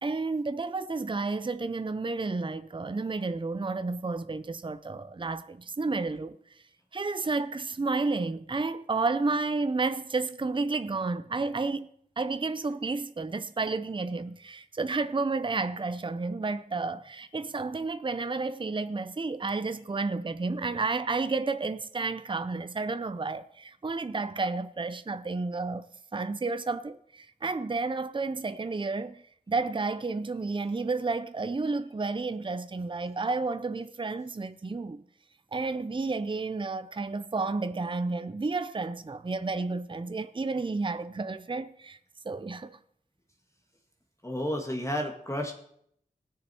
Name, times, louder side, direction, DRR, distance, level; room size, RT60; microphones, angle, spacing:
voice 1, 0.0-6.4 6.9-11.9 12.2-25.9 26.1-35.0 35.5-42.0 42.2-42.8, right 3 dB, 30° right, 0.6 m, -31 dB
voice 2, 44.2-45.5, equal, 20° left, 1.9 m, -31 dB
19.5 x 6.6 x 4.4 m
wide cardioid pair, 75°, 16 cm